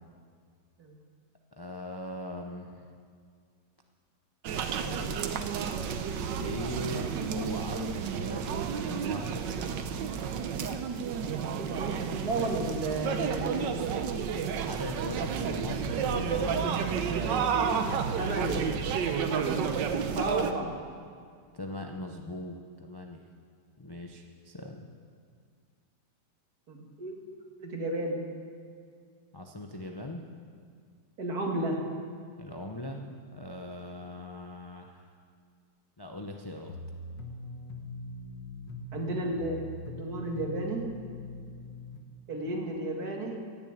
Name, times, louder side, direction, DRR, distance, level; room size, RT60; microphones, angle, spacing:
voice 1, 1.6-2.9 4.8-5.1 6.4-9.8 14.6-18.1 20.5-20.7 21.5-23.3 23.8-24.9 29.3-30.2 32.4-35.1 36.0-36.7 42.4-42.8, left 1 dB, 35° left, 2 dB, 0.3 m, -40 dB
sound 1, 4.4-20.5, right 7 dB, 80° right, 1.5 m, -31 dB
voice 2, 11.6-13.7 17.2-17.8 18.2-18.9 19.2-20.7 26.7-27.2 27.6-28.2 31.2-31.8 38.9-39.6 39.9-40.9 42.3-43.4, right 1 dB, 55° right, 0 dB, 2.4 m, -33 dB
sound 2, 36.7-42.0, left 1 dB, 75° left, 1.9 m, -41 dB
16.0 x 7.3 x 8.7 m, 2.1 s
omnidirectional pair, 1.9 m